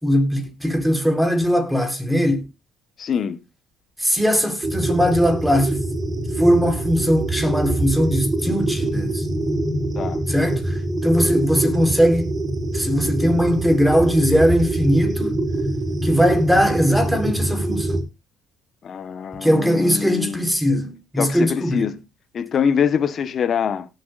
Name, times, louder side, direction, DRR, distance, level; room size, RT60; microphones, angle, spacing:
voice 1, 0.0-2.4 4.0-5.8 6.4-9.2 10.3-10.8 11.0-12.3 12.7-15.4 16.0-18.0 19.4-21.9, equal, 5° right, 4.2 m, -19 dB
voice 2, 3.0-3.4 9.9-10.2 18.8-20.4 21.2-22.0 22.3-23.9, left 7 dB, 50° left, 1.3 m, -24 dB
sound 1, 4.6-18.0, right 2 dB, 35° right, 4.2 m, -24 dB
18.0 x 7.9 x 2.6 m
supercardioid pair, 80°, 0 cm